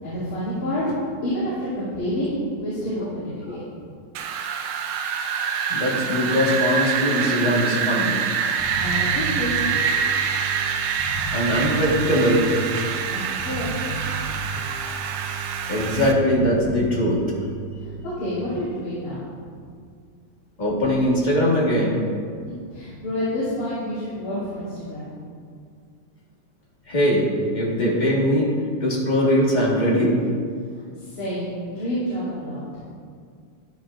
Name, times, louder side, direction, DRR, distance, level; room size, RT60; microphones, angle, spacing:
voice 1, 0.0-0.8 1.2-2.3 2.6-3.6 8.8-9.6 13.1-14.2 17.8-19.2 22.7-25.1 31.0-32.8, equal, 75° left, -13 dB, 4.3 m, -29 dB
Wind, 4.2-16.1, right 7 dB, 80° right, 1.9 m, -26 dB
voice 2, 5.7-8.2 11.3-12.5 15.7-17.2 20.6-22.0 26.9-27.3 27.5-28.5 28.8-30.1, equal, 30° left, -4 dB, 0.8 m, -21 dB
Bass guitar, 8.6-18.2, right 3 dB, ahead, 1.3 m, -34 dB
13.5 x 10.5 x 2.5 m, 2.2 s
omnidirectional pair, 3.4 m